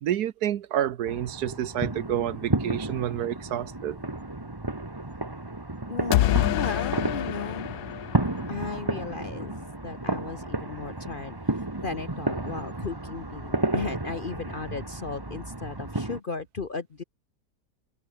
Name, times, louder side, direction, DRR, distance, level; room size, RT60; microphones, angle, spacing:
voice 1, 0.0-4.0, right 11 dB, 70° right, 1.3 m, -29 dB
sound 1, 1.1-16.2, right 2 dB, 15° right, 1.6 m, -32 dB
voice 2, 5.9-7.7 8.5-17.0, left 4 dB, 40° left, 0.9 m, -36 dB
sound 2, 6.1-9.0, left 14 dB, 70° left, 1.0 m, -27 dB
omnidirectional pair, 1.8 m